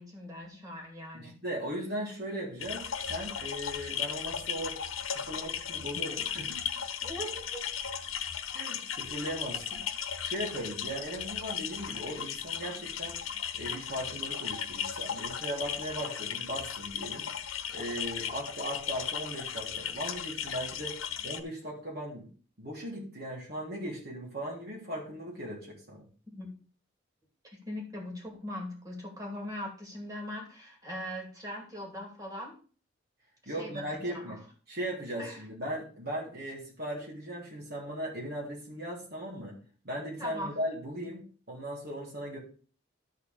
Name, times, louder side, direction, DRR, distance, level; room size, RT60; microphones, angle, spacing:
voice 1, 0.0-1.4 7.0-7.6 26.3-26.6 27.4-32.6 33.4-34.4 35.2-35.4 40.2-40.5, equal, 20° right, -1 dB, 2.6 m, -40 dB
voice 2, 1.1-4.8 5.2-6.6 8.5-9.8 10.2-13.2 13.5-17.3 17.7-22.3 22.6-26.0 33.4-34.4 34.7-39.6 39.8-42.4, equal, 50° right, -3 dB, 3.2 m, -38 dB
sound 1, 2.6-21.4, left 8 dB, 85° left, 0.9 m, -36 dB
12.5 x 4.2 x 5.2 m, 0.40 s
head